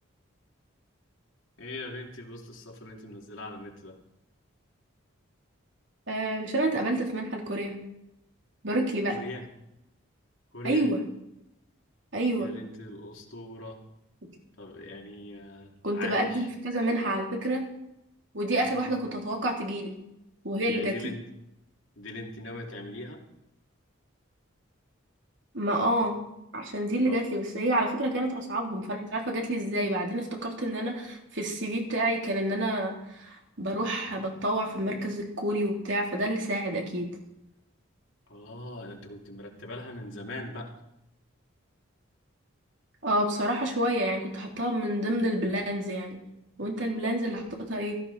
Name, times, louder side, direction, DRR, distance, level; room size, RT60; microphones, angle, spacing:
voice 1, 1.6-4.0 9.1-9.5 10.5-10.9 12.4-13.8 14.6-16.5 18.7-19.0 20.6-21.2 22.0-23.2 27.1-27.2 38.3-40.7, left 2 dB, 70° left, 0 dB, 2.8 m, -41 dB
voice 2, 6.1-7.7 8.6-9.2 10.6-11.0 12.1-12.5 15.8-17.7 18.3-19.9 20.4-21.1 25.5-26.2 26.5-37.1 43.0-46.2 46.6-47.9, right 1 dB, 60° right, 0 dB, 3.2 m, -29 dB
16.5 x 14.0 x 4.2 m, 0.84 s
head